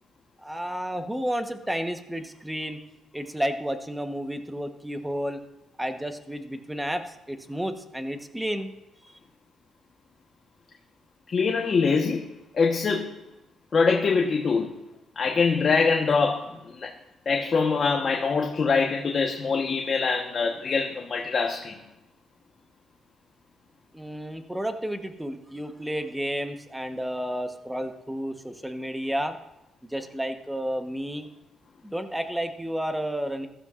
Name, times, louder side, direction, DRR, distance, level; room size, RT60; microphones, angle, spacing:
voice 1, 0.4-2.8 3.1-5.4 5.8-8.7 23.9-29.4 29.8-31.3 31.8-33.5, equal, 5° right, 7 dB, 1.0 m, -31 dB
voice 2, 11.3-12.3 12.5-13.2 13.7-14.8 15.2-16.9 17.3-21.8, left 5 dB, 45° left, 1 dB, 1.1 m, -24 dB
15.0 x 12.5 x 2.5 m, 0.94 s
cardioid pair, 90°, 0 cm